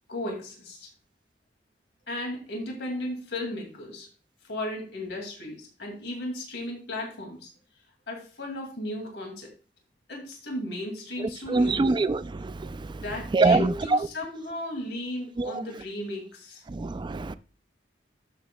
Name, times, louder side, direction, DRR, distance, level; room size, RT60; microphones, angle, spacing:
voice 1, 0.1-0.9 2.1-4.1 4.4-7.5 8.1-9.5 10.1-12.0 12.9-16.6, left 1 dB, 70° left, 2.4 m, -35 dB
voice 2, 11.5-12.2 13.3-13.7 15.4-15.5 16.7-17.3, right 3 dB, 25° right, 0.4 m, -22 dB
12.5 x 7.2 x 2.3 m
head